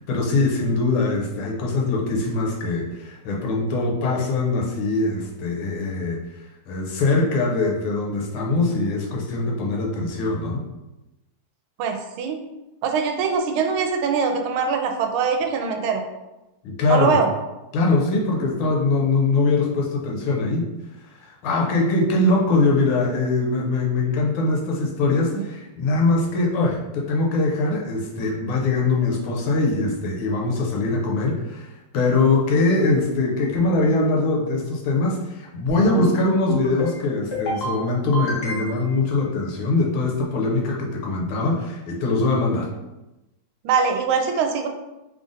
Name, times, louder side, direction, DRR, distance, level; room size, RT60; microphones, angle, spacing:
voice 1, 0.1-10.6 16.6-17.2 17.7-20.7 21.1-42.7, left 3 dB, 90° left, -1 dB, 1.6 m, -22 dB
voice 2, 11.8-12.4 12.8-16.0 16.9-17.3 43.6-44.7, right 5 dB, 85° right, 5 dB, 1.4 m, -22 dB
sound 1, 35.7-36.1 36.5-36.9 37.3-37.7 38.1-38.9, left 1 dB, 40° left, 1.0 m, -27 dB
3.6 x 2.6 x 3.8 m, 1.0 s
omnidirectional pair, 2.3 m